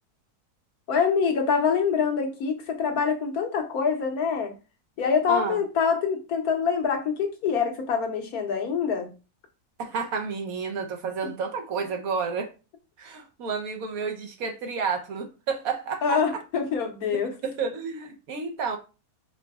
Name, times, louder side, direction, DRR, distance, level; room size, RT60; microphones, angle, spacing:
voice 1, 0.9-4.5 5.0-9.1 16.0-17.3, left 6 dB, 70° left, 4 dB, 1.3 m, -25 dB
voice 2, 5.3-5.6 9.8-12.5 13.0-16.2 17.4-18.8, right 5 dB, 70° right, 5 dB, 1.2 m, -30 dB
4.9 x 3.7 x 2.3 m, 0.31 s
omnidirectional pair, 1.6 m